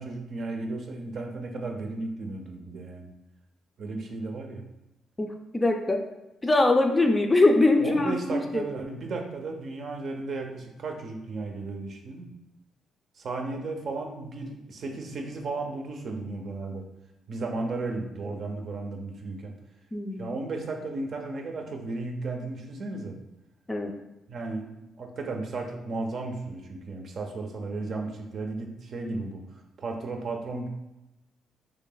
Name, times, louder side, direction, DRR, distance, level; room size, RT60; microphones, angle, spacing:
voice 1, 0.0-3.1 3.8-4.6 7.8-12.3 13.2-16.8 17.3-19.5 20.2-23.2 24.3-30.7, right 3 dB, 55° right, 2 dB, 0.6 m, -34 dB
voice 2, 5.5-6.0 6.4-8.6 19.9-20.4 23.7-23.9, left 2 dB, 20° left, 3 dB, 0.5 m, -22 dB
3.2 x 2.8 x 3.9 m, 0.94 s
cardioid pair, 90°, 0 cm